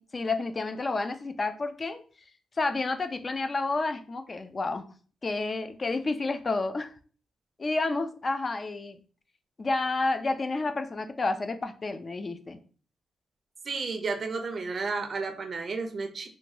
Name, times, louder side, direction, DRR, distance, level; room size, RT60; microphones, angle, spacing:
voice 1, 0.0-2.0 2.6-4.9 5.2-6.9 7.6-9.0 9.6-12.6, left 3 dB, 35° left, 8 dB, 0.3 m, -30 dB
voice 2, 13.6-16.3, right 4 dB, 45° right, 5 dB, 0.4 m, -32 dB
2.7 x 2.2 x 2.9 m, 0.40 s
cardioid pair, 85°, 0 cm